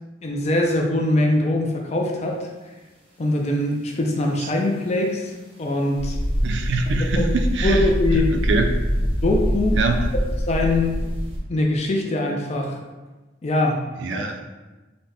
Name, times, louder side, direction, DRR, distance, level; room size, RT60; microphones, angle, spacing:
voice 1, 0.2-2.5 3.2-6.2 7.0-7.3 7.6-8.4 9.2-9.8 10.5-11.0 11.5-12.8 13.4-13.8 14.1-14.3, left 1 dB, 35° left, 1 dB, 0.4 m, -22 dB
sound 1, 6.0-11.4, equal, 30° right, 0.7 m, -24 dB
voice 2, 6.4-7.9 8.1-8.7 9.8-10.0 14.0-14.4, right 3 dB, 65° right, 5 dB, 0.4 m, -24 dB
3.8 x 2.1 x 3.4 m, 1.2 s
head